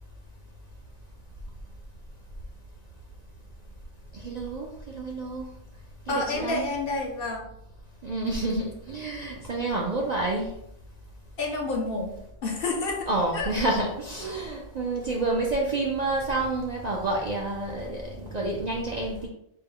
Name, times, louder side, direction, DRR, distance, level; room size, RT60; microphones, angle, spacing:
voice 1, 4.1-5.5 6.1-6.6 8.0-10.5 13.1-19.3, right 2 dB, 50° right, -2 dB, 0.5 m, -29 dB
voice 2, 6.1-7.5 11.4-13.1 13.3-13.5, left 3 dB, 60° left, 2 dB, 0.7 m, -29 dB
4.2 x 2.0 x 3.7 m, 0.76 s
omnidirectional pair, 1.3 m